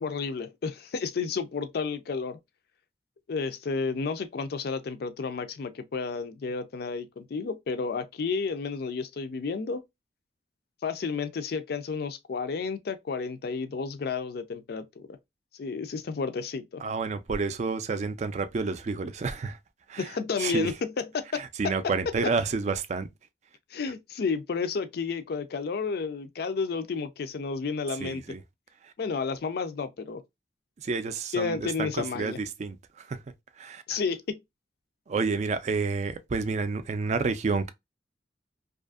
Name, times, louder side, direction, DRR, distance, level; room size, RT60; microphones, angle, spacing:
voice 1, 0.0-2.4 3.3-9.8 10.8-15.2 15.6-16.8 20.0-21.7 22.1-22.2 23.7-28.2 29.0-30.2 31.3-32.4 33.9-34.4, left 5 dB, 60° left, 0.4 m, -31 dB
voice 2, 16.8-19.6 19.9-20.0 20.4-20.7 21.6-23.1 28.0-28.4 30.9-32.3 32.6-32.7 33.6-33.8 35.1-37.7, right 4 dB, 40° right, 0.3 m, -29 dB
2.6 x 2.4 x 2.3 m
head